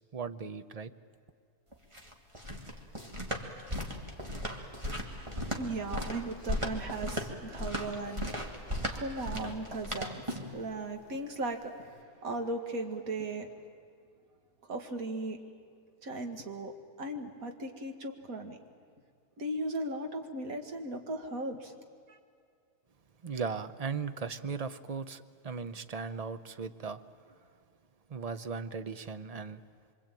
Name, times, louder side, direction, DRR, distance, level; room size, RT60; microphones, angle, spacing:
voice 1, 0.1-0.9 23.2-27.3 28.1-29.6, right 5 dB, 40° right, 11 dB, 0.5 m, -38 dB
sound 1, 1.7-10.6, equal, 20° right, 2.2 m, -36 dB
voice 2, 5.6-8.4 8.9-13.5 14.6-15.4 16.0-18.6 19.4-21.7 22.1-22.2, right 2 dB, 65° right, 5 dB, 2.3 m, -37 dB
25.5 x 25.0 x 9.0 m, 2.2 s
omnidirectional pair, 1.6 m